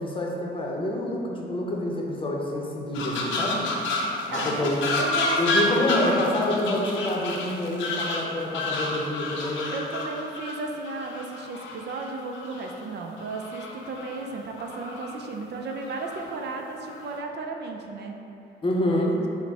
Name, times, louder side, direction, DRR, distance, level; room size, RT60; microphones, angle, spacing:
voice 1, 0.0-3.7 4.3-5.0 5.4-9.8 18.6-19.2, left 1 dB, 25° left, -2 dB, 0.7 m, -27 dB
sound 1, 2.9-12.7 13.2-14.3 14.6-15.1 15.7-16.2 16.9-17.2, left 2 dB, 75° left, 0.6 m, -30 dB
voice 2, 4.1-6.3 9.7-18.2, right 3 dB, 60° right, 2 dB, 0.5 m, -34 dB
5.8 x 2.1 x 4.1 m, 2.8 s
cardioid pair, 90°, 20 cm